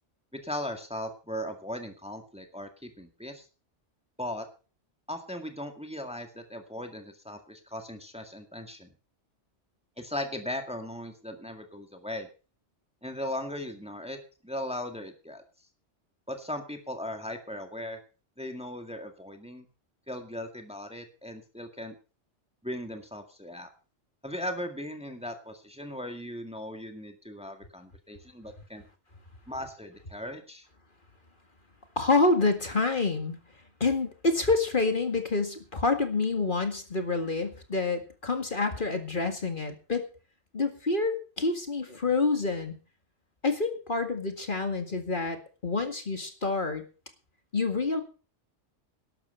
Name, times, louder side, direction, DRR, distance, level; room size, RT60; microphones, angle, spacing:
voice 1, 0.4-3.5 4.2-4.5 5.1-8.9 10.0-12.3 13.0-14.2 14.4-15.4 16.3-18.0 18.4-19.7 20.1-22.0 22.6-23.7 24.2-28.8 29.5-30.6, left 1 dB, 5° right, 5 dB, 1.9 m, -38 dB
voice 2, 32.0-33.4 33.8-40.0 40.5-42.8 43.4-46.8 47.5-48.0, left 3 dB, 45° left, 6 dB, 2.1 m, -27 dB
12.5 x 12.0 x 5.5 m, 0.36 s
omnidirectional pair, 1.2 m